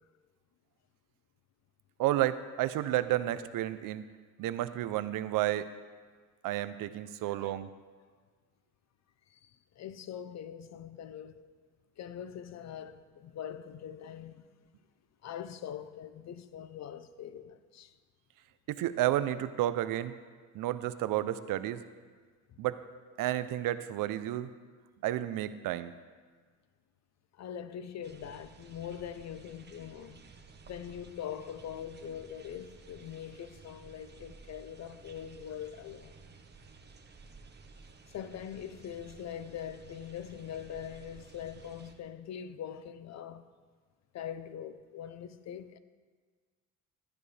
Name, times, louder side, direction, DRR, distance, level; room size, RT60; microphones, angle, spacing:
voice 1, 2.0-4.0 4.4-5.7 6.4-7.7 18.7-20.1 20.5-21.8 22.6-22.8 23.2-24.5 25.0-25.9, right 13 dB, 85° right, 0.6 m, -31 dB
voice 2, 9.3-11.4 12.0-14.4 15.2-17.9 22.5-22.6 27.3-30.2 30.6-36.2 38.1-43.4 44.1-45.8, left 9 dB, 55° left, 0.7 m, -43 dB
sound 1, 28.0-41.9, right 4 dB, 30° right, 1.1 m, -54 dB
15.5 x 12.5 x 3.3 m
cardioid pair, 115°, 32 cm